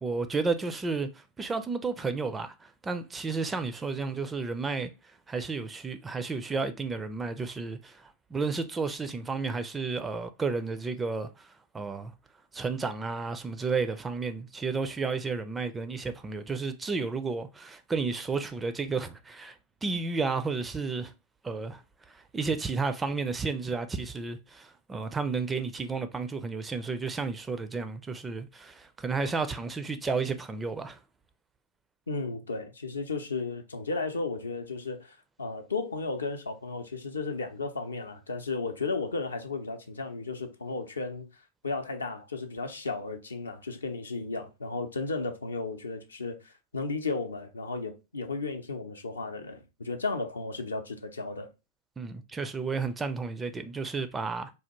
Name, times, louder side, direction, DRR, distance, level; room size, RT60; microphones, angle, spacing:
voice 1, 0.0-12.1 12.5-21.1 21.4-21.8 22.1-31.0 52.0-54.5, right 4 dB, 15° right, 0.4 m, -32 dB
voice 2, 32.1-41.3 41.6-51.5, left 3 dB, 75° left, 0.5 m, -34 dB
3.3 x 2.3 x 2.9 m
figure-of-eight pair, 90°, 0 cm